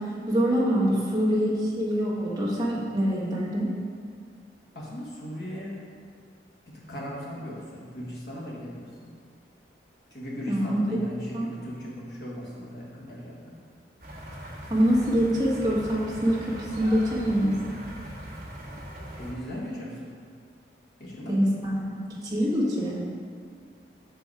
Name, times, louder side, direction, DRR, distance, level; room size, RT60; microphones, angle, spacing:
voice 1, 0.0-3.7 10.5-10.8 11.3-11.5 14.7-17.6 21.3-22.0 22.2-23.0, equal, 20° right, -6 dB, 1.3 m, -25 dB
voice 2, 4.7-5.8 6.7-9.1 10.1-13.6 19.2-20.1 21.0-21.6, equal, 65° left, -5 dB, 1.3 m, -38 dB
sound 1, 14.0-19.3, equal, 50° right, 1.0 m, -40 dB
6.0 x 4.7 x 4.7 m, 2.1 s
head